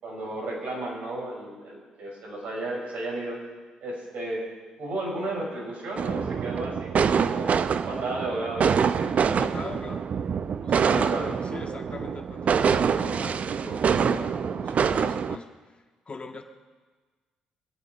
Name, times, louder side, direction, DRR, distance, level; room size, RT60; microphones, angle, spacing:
voice 1, 0.0-3.4 3.8-4.4 4.8-9.1 10.8-11.3, right 2 dB, 70° right, -3 dB, 6.5 m, -33 dB
sound 1, 6.0-15.4, right 6 dB, 55° right, 0.6 m, -25 dB
voice 2, 9.4-10.1 10.5-11.2 11.4-15.5 16.1-16.4, left 3 dB, 40° left, 4 dB, 1.6 m, -40 dB
23.5 x 9.0 x 5.5 m, 1.4 s
hypercardioid pair, 55°, 3 cm